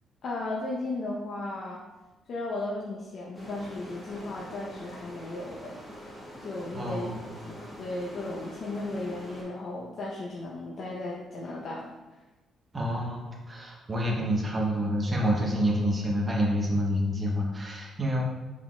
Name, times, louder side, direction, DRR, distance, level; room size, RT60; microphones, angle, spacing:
voice 1, 0.2-1.8 2.3-5.8 6.4-7.1 7.4-11.9, left 2 dB, 60° left, -4 dB, 0.6 m, -35 dB
sound 1, 3.3-9.4, equal, 10° left, 1.3 m, -44 dB
voice 2, 6.7-7.3 12.7-18.2, equal, 25° right, -2 dB, 0.8 m, -28 dB
4.6 x 3.8 x 2.2 m, 1.1 s
cardioid pair, 90°, 0 cm